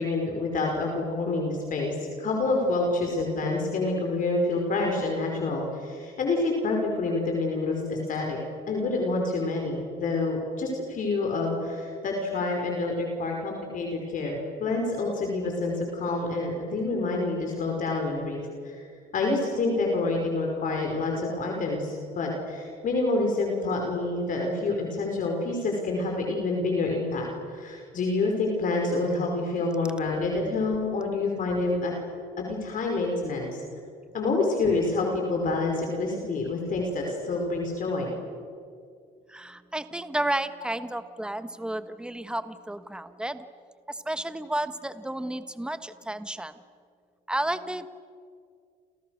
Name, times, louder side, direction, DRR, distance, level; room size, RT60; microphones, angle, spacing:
voice 1, 0.0-8.4 8.7-18.9 19.1-31.9 32.4-33.6 34.1-38.1, left 3 dB, 50° left, 1 dB, 5.5 m, -27 dB
voice 2, 39.3-43.4 43.9-46.5 47.3-47.9, right 1 dB, 5° right, 11 dB, 1.4 m, -32 dB
30.0 x 29.0 x 6.6 m, 2.3 s
cardioid pair, 110°, 17 cm